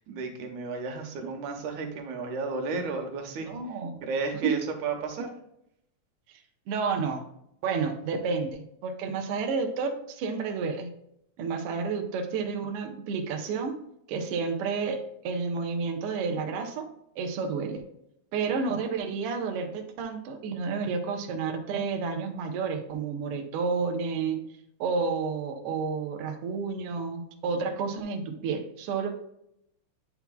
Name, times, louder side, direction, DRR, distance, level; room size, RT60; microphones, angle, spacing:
voice 1, 0.0-5.3, right 4 dB, 90° right, 2 dB, 2.4 m, -33 dB
voice 2, 3.5-3.9 4.4-4.6 6.3-6.4 6.7-7.3 7.6-10.9 11.4-13.8 14.1-16.9 17.1-17.8 18.3-24.4 24.8-29.1, right 5 dB, 65° right, 4 dB, 1.6 m, -30 dB
8.6 x 5.8 x 2.3 m, 0.76 s
omnidirectional pair, 3.3 m